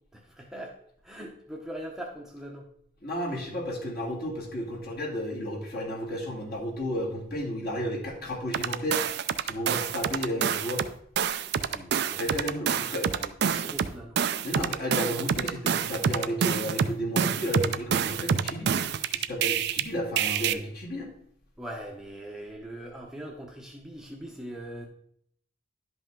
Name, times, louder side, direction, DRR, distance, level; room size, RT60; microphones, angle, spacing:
voice 1, 0.1-0.8 1.0-2.7 11.7-12.4 12.9-14.2 21.6-24.9, right 1 dB, ahead, -1 dB, 0.8 m, -41 dB
voice 2, 3.0-9.0 9.4-10.8 12.2-13.1 14.4-18.7 19.1-21.1, equal, 50° left, -1 dB, 2.0 m, -32 dB
sound 1, 8.5-10.9 11.2-19.8 20.2-20.5, right 7 dB, 55° right, 0.4 m, -27 dB
11.0 x 5.4 x 3.7 m, 0.65 s
head